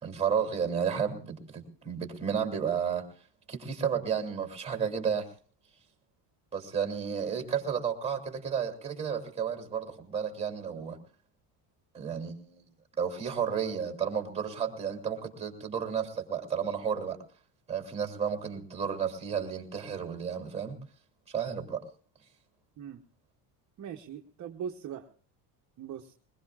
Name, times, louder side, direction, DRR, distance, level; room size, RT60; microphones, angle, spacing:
voice 1, 0.0-3.1 3.5-5.3 6.5-11.0 11.9-12.6 13.0-17.2 17.7-20.8 21.3-21.8, right 7 dB, 15° right, 4 dB, 2.9 m, -32 dB
voice 2, 23.8-25.1 25.8-26.1, right 8 dB, 40° right, 3 dB, 1.0 m, -40 dB
22.0 x 20.5 x 2.4 m, 0.43 s
cardioid pair, 150°, 47 cm